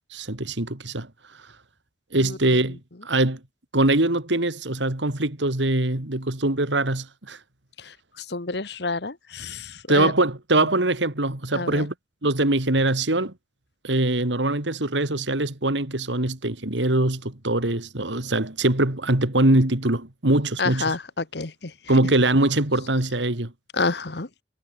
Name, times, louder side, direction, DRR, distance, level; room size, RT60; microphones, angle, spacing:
voice 1, 0.1-1.1 2.1-2.8 3.0-3.4 3.7-7.4 9.9-11.9 12.2-13.3 13.8-20.9 21.9-23.5, right 2 dB, 80° right, 2.8 m, -22 dB
voice 2, 7.8-10.1 11.5-11.9 20.6-21.7 23.7-24.3, left 3 dB, 65° left, 1.4 m, -29 dB
head